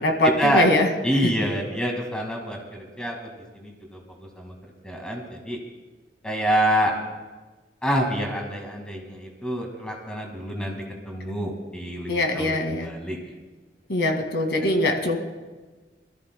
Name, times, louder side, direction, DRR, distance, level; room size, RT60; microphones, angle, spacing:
voice 1, 0.0-0.9 1.2-1.3 12.1-12.9 13.9-15.2, left 1 dB, 80° left, 3 dB, 2.0 m, -22 dB
voice 2, 1.0-4.0 4.4-4.5 4.8-5.6 6.2-6.9 7.8-13.2, equal, 5° left, 1 dB, 1.9 m, -27 dB
26.0 x 14.0 x 2.2 m, 1.3 s
head